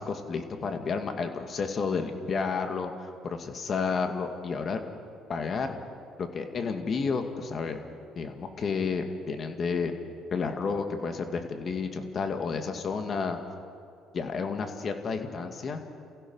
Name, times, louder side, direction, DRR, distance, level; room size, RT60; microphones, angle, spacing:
voice 1, 0.0-4.8 5.3-5.8 6.2-7.8 8.1-9.9 10.3-13.4 14.1-15.8, left 5 dB, 45° left, 6 dB, 2.2 m, -31 dB
29.5 x 15.5 x 5.7 m, 2.5 s
supercardioid pair, 85°, 0 cm